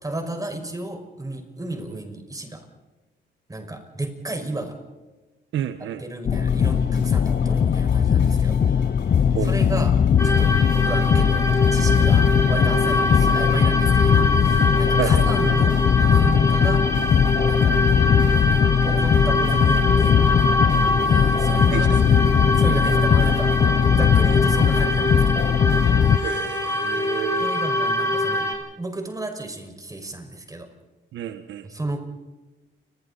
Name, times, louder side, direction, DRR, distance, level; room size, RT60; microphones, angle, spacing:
voice 1, 0.0-2.6 3.5-4.8 5.8-8.8 9.4-9.9 10.2-15.7 16.1-16.8 17.4-17.8 18.8-20.2 21.0-21.9 22.6-25.4 26.7-27.0 27.4-28.5 28.8-30.7 31.6-32.0, right 2 dB, 15° right, 5 dB, 5.6 m, -32 dB
voice 2, 5.5-6.0 9.3-9.5 15.0-15.2 21.7-22.0 26.2-27.5 31.1-31.7, right 10 dB, 75° right, 9 dB, 1.3 m, -29 dB
sound 1, 6.2-26.2, left 7 dB, 40° left, 0.7 m, -19 dB
sound 2, 6.3-26.3, left 5 dB, 65° left, 6.2 m, -39 dB
sound 3, 10.2-28.5, left 1 dB, 15° left, 7.8 m, -24 dB
30.0 x 22.0 x 4.2 m, 1.1 s
cardioid pair, 90°, 20 cm